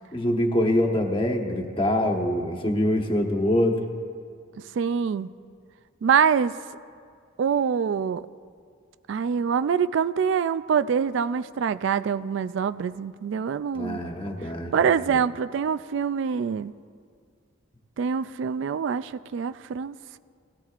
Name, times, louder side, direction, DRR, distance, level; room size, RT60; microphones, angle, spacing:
voice 1, 0.1-3.8 13.7-15.1, left 1 dB, 25° left, 2 dB, 1.2 m, -24 dB
voice 2, 4.8-5.3 6.0-6.6 7.4-8.3 9.1-14.0 14.7-16.7 18.0-20.2, right 7 dB, 65° right, 14 dB, 0.3 m, -25 dB
19.5 x 17.0 x 2.5 m, 2.2 s
head